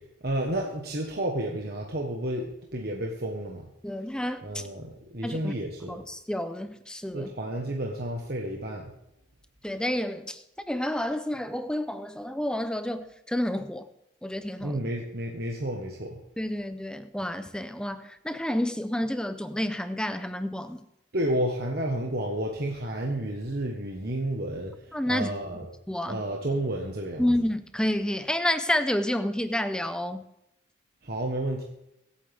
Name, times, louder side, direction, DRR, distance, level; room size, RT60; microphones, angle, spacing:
voice 1, 0.2-3.6 4.4-6.0 7.1-8.9 14.6-16.2 21.1-25.7 26.1-27.3 31.0-31.6, right 1 dB, 55° right, 0 dB, 1.4 m, -31 dB
voice 2, 3.8-4.6 5.2-5.5 5.9-7.3 9.6-10.4 10.7-13.9 14.2-14.8 16.4-20.8 24.9-25.3 25.9-26.2 27.2-30.2, left 1 dB, 5° left, 10 dB, 0.7 m, -29 dB
24.5 x 8.6 x 3.6 m, 0.86 s
head